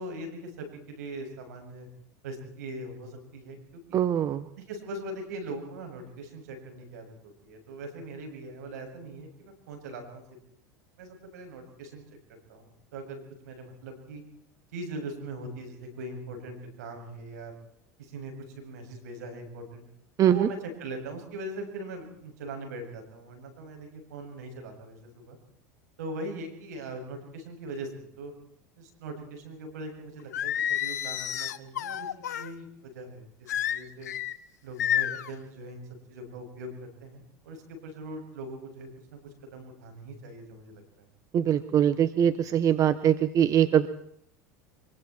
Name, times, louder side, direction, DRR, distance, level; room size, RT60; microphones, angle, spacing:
voice 1, 0.0-1.9 2.2-4.0 4.6-10.2 11.0-12.2 12.5-14.2 14.7-17.5 18.0-19.8 20.2-25.4 26.0-28.3 28.8-34.1 34.6-36.7 37.0-41.1, right 2 dB, 80° right, 5 dB, 7.4 m, -41 dB
voice 2, 3.9-4.4 20.2-20.5 41.3-43.9, right 10 dB, 40° right, 12 dB, 1.3 m, -22 dB
Singing, 30.3-32.5 33.5-34.3 34.8-35.3, left 10 dB, 85° left, 1.2 m, -30 dB
25.0 x 23.5 x 4.6 m, 0.71 s
hypercardioid pair, 95°, 9 cm